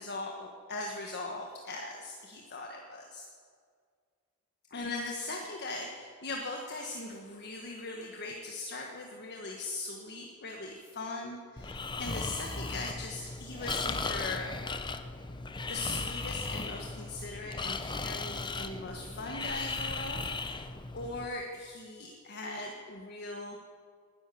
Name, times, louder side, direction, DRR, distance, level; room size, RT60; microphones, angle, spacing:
voice 1, 0.0-3.3 4.7-14.5 15.7-20.6 20.9-23.6, left 2 dB, 50° left, 1 dB, 1.4 m, -40 dB
Breathing, 11.6-21.3, left 3 dB, 20° left, 0.7 m, -37 dB
19.5 x 10.5 x 7.0 m, 2.1 s
head